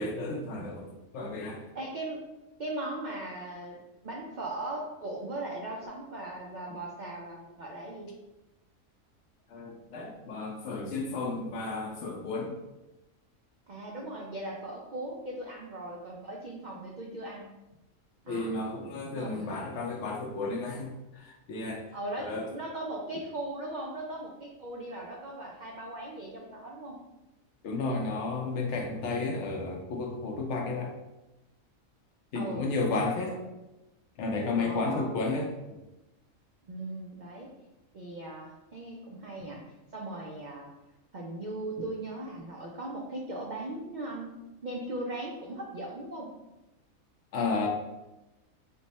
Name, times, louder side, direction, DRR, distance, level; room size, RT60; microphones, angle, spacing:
voice 1, 0.0-1.7 9.5-12.5 18.3-21.8 22.2-22.5 27.6-30.9 32.3-33.4 34.2-35.5 47.3-47.7, left 3 dB, 65° left, 1 dB, 0.8 m, -32 dB
voice 2, 1.7-2.2 2.6-8.1 13.7-17.5 18.2-18.5 19.2-19.6 21.9-27.0 32.3-32.7 33.2-33.3 34.6-35.1 36.6-37.5 37.9-40.7 41.1-44.3 44.6-46.3, right 2 dB, 90° right, -2 dB, 0.4 m, -38 dB
3.3 x 2.1 x 4.0 m, 1.0 s
omnidirectional pair, 1.4 m